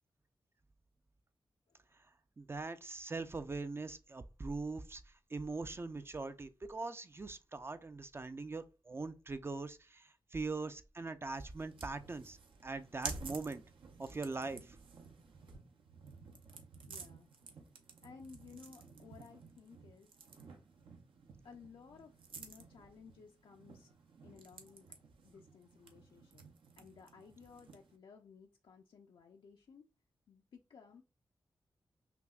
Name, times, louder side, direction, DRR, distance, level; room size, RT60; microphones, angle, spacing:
voice 1, 2.4-5.0 5.3-12.4 12.6-13.6 14.0-14.8, right 3 dB, 30° right, 0.3 m, -42 dB
sound 1, 11.3-28.0, right 4 dB, 80° right, 0.6 m, -52 dB
voice 2, 16.9-17.3 18.0-20.1 21.4-23.9 24.2-24.9 25.2-26.4 26.8-29.9 30.3-31.0, left 5 dB, 75° left, 0.4 m, -57 dB
5.6 x 2.0 x 2.3 m
cardioid pair, 80°, 9 cm